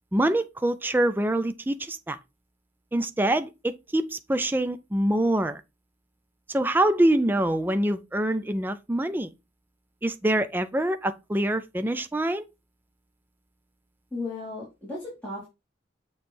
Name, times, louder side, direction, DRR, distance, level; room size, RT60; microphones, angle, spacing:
voice 1, 0.1-2.2 2.9-5.6 6.5-9.3 10.0-12.4, right 1 dB, 10° right, 0.4 m, -25 dB
voice 2, 14.1-15.5, left 2 dB, 5° left, 2.3 m, -35 dB
6.9 x 3.2 x 4.4 m
head